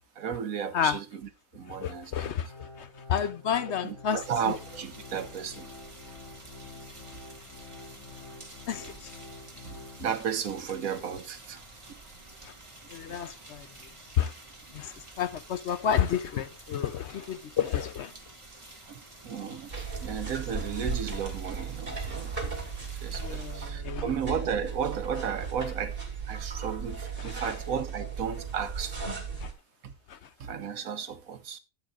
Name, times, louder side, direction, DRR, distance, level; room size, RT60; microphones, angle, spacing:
voice 1, 0.1-2.3 3.8-5.7 7.1-7.2 9.6-11.6 11.9-12.0 13.1-13.2 18.9-22.4 23.0-26.0 26.2-29.2 29.8-29.9 30.4-31.6, right 7 dB, 80° right, 1.4 m, -34 dB
voice 2, 1.8-4.2 4.5-4.6 8.7-9.1 12.4-12.5 12.9-13.7 14.2-14.3 14.7-18.1 23.2-24.0 27.2-27.5 29.4-29.5 30.1-30.2, left 8 dB, 60° left, 0.9 m, -30 dB
Organ, 2.4-10.4 10.9-11.0 11.6-11.7, left 3 dB, 85° left, 3.2 m, -48 dB
sound 1, 4.2-23.7, right 2 dB, 20° right, 1.8 m, -50 dB
sound 2, 19.7-29.5, right 5 dB, 45° right, 2.7 m, -36 dB
13.0 x 8.2 x 2.5 m
omnidirectional pair, 1.4 m